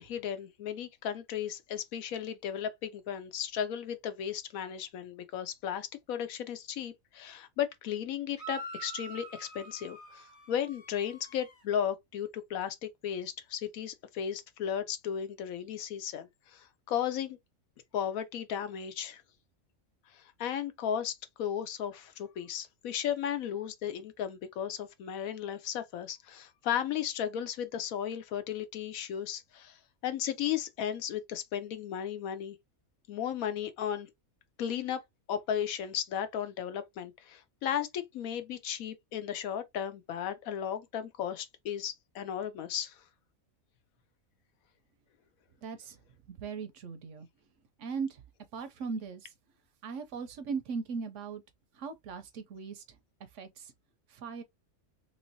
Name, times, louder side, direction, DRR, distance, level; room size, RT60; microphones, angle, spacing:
voice 1, 0.0-17.4 17.9-19.2 20.1-29.8 30.0-32.6 33.1-34.1 34.6-35.0 35.3-43.0, left 9 dB, 80° left, 1.1 m, -35 dB
sound 1, 8.4-11.6, right 3 dB, 25° left, 1.2 m, -46 dB
voice 2, 45.6-46.0 46.3-47.3 47.8-48.2 48.5-49.3 49.8-51.4 51.8-52.8 53.3-53.7 54.1-54.4, right 5 dB, 70° right, 0.8 m, -38 dB
3.1 x 3.1 x 2.6 m
omnidirectional pair, 1.5 m